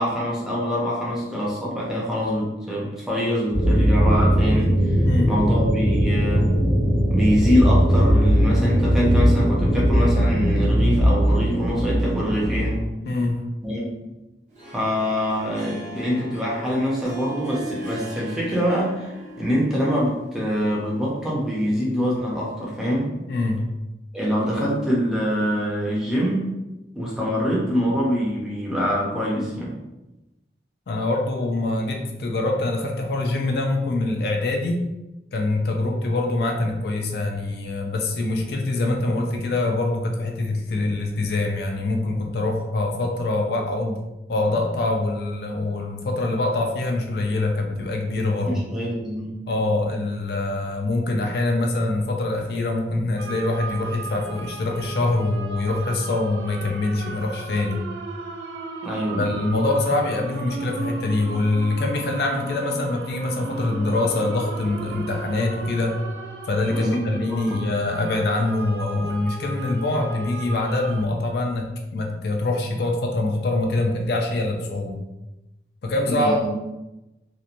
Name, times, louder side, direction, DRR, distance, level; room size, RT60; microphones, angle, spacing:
voice 1, 0.0-4.8 5.3-6.5 7.1-12.8 13.6-13.9 14.7-23.1 24.1-26.5 26.9-29.8 48.4-49.3 58.8-59.3 66.7-67.0 67.3-67.6 76.0-76.5, equal, 5° right, -6 dB, 0.5 m, -24 dB
sound 1, 3.5-12.8, equal, 80° left, 0.9 m, -19 dB
voice 2, 5.0-5.4 13.0-13.4 23.3-23.6 30.9-34.8 35.3-44.0 44.3-48.6 49.5-57.8 59.2-66.0 66.5-75.0 75.8-76.5, left 2 dB, 60° left, 2 dB, 0.3 m, -24 dB
Harp, 14.5-22.8, right 1 dB, 40° right, 0.7 m, -40 dB
sound 2, 53.2-71.0, right 4 dB, 80° right, 0.3 m, -36 dB
2.8 x 2.1 x 2.5 m, 0.98 s
head